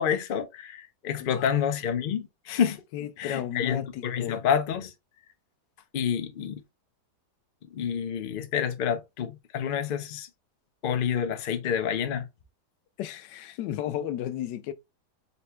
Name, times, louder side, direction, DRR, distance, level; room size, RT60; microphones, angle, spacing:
voice 1, 0.0-2.8 3.2-4.9 5.9-6.6 7.7-10.3 10.8-12.3, left 8 dB, 60° left, 0.5 m, -28 dB
voice 2, 1.2-1.5 2.9-4.4 13.0-14.7, left 11 dB, 85° left, 1.2 m, -34 dB
4.2 x 2.2 x 4.3 m
omnidirectional pair, 1.8 m